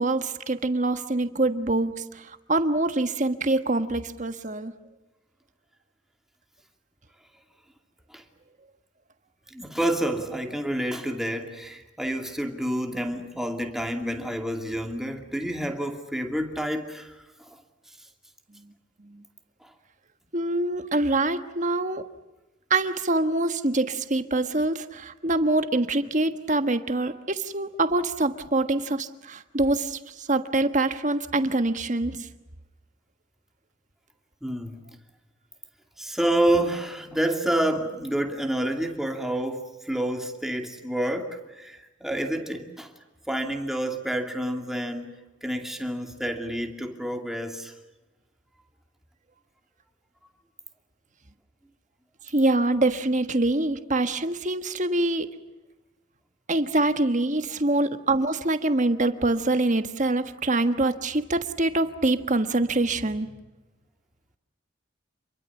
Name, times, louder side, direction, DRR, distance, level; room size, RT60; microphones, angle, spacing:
voice 1, 0.0-4.7 19.0-19.2 20.3-22.0 22.7-32.3 52.3-55.3 56.5-63.3, right 2 dB, 40° right, 9 dB, 1.4 m, -25 dB
voice 2, 9.5-17.1 34.4-34.8 36.0-42.9 43.3-45.1 45.4-47.7, right 1 dB, ahead, 4 dB, 2.5 m, -28 dB
28.5 x 23.0 x 7.3 m, 1.1 s
head